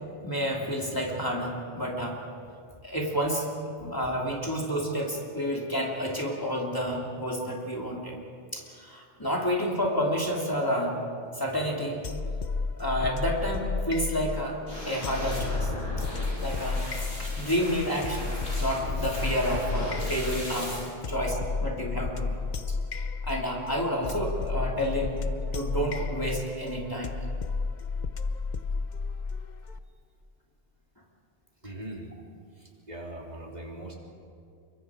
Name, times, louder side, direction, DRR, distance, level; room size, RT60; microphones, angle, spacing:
voice 1, 0.2-2.2 2.8-3.4 3.8-8.1 8.5-11.0 11.3-12.0 12.8-14.6 14.8-15.7 16.4-16.9 17.1-22.4 23.2-27.2, equal, 20° left, -3 dB, 2.9 m, -30 dB
sound 1, 12.0-29.8, left 4 dB, 45° left, 0.9 m, -32 dB
sound 2, 14.7-20.8, equal, 70° left, 8.5 m, -37 dB
voice 2, 31.6-32.1 32.6-34.0, right 1 dB, 40° right, -1 dB, 3.3 m, -41 dB
27.5 x 24.0 x 4.9 m, 2.3 s
omnidirectional pair, 1.1 m